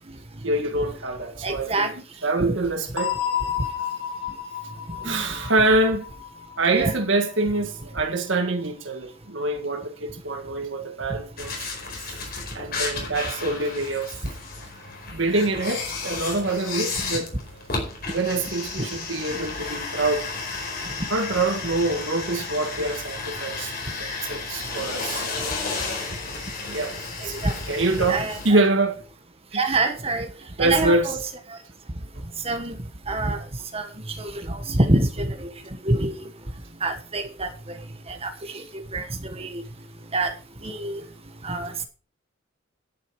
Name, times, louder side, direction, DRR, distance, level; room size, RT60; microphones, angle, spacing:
voice 1, 0.4-3.1 5.0-6.1 6.6-12.2 12.5-14.3 15.1-17.3 18.1-20.3 21.1-23.7 24.0-25.3 26.6-29.0 29.5-29.6 30.6-31.1, right 2 dB, 80° right, 1.9 m, -25 dB
voice 2, 1.4-1.9 5.0-5.2 6.7-6.9 27.2-27.5 28.1-28.6 29.5-30.3 30.6-31.2 32.4-32.8 33.1-33.4 33.7-35.5 35.8-36.3 36.8-37.5 38.1-38.6 38.9-39.0 39.3-39.6 40.1-40.3 40.6-41.0 41.4-41.7, right 2 dB, 30° right, 1.4 m, -26 dB
sound 1, 3.0-7.6, left 9 dB, 30° left, 3.9 m, -31 dB
sound 2, 11.4-28.5, left 4 dB, 55° left, 4.6 m, -33 dB
10.5 x 9.6 x 4.8 m
head